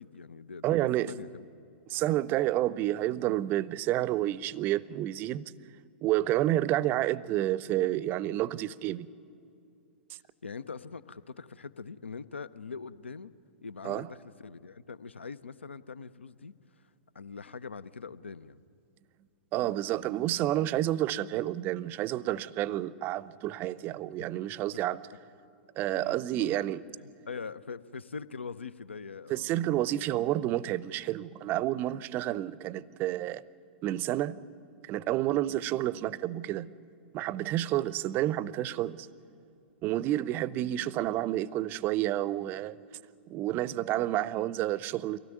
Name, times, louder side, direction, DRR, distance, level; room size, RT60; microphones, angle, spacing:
voice 1, 0.0-0.8 1.1-1.4 10.4-13.3 13.6-16.5 17.1-18.6 25.9-26.7 27.0-29.7, left 5 dB, 75° left, 0.7 m, -43 dB
voice 2, 0.6-1.1 1.9-5.5 6.0-9.1 13.8-14.1 19.5-25.0 25.8-26.8 29.3-33.4 33.8-34.4 34.8-36.7 37.1-39.1 39.8-42.7 43.3-45.2, right 14 dB, 30° right, 0.6 m, -30 dB
23.5 x 17.0 x 9.2 m
figure-of-eight pair, 100°, 6 cm